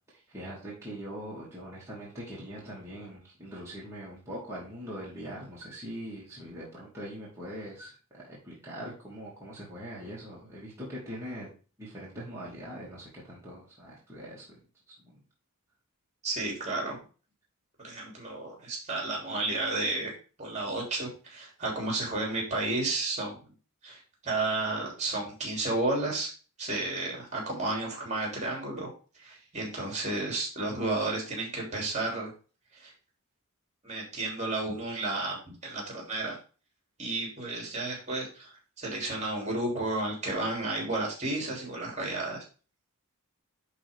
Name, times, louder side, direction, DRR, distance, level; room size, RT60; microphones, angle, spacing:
voice 1, 0.1-11.5 11.8-15.2, equal, 15° right, -7 dB, 2.6 m, -42 dB
voice 2, 16.2-17.0 17.8-20.1 20.4-23.5 23.8-26.3 26.6-32.3 32.7-32.9 33.8-36.4 37.0-42.4, right 2 dB, 30° right, -1 dB, 3.2 m, -32 dB
10.5 x 4.2 x 3.6 m, 0.35 s
head